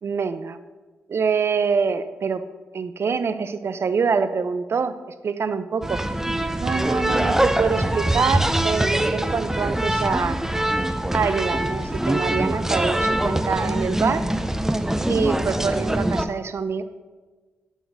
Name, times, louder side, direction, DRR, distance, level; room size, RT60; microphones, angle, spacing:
voice 1, 0.0-0.6 1.1-2.4 2.7-5.0 5.2-6.0 6.6-10.4 11.1-14.3 15.1-16.8, right 5 dB, 55° right, 11 dB, 0.6 m, -25 dB
sound 1, 5.8-16.2, right 1 dB, 10° right, 0.6 m, -23 dB
9.1 x 3.9 x 6.2 m, 1.3 s
supercardioid pair, 50°, 5 cm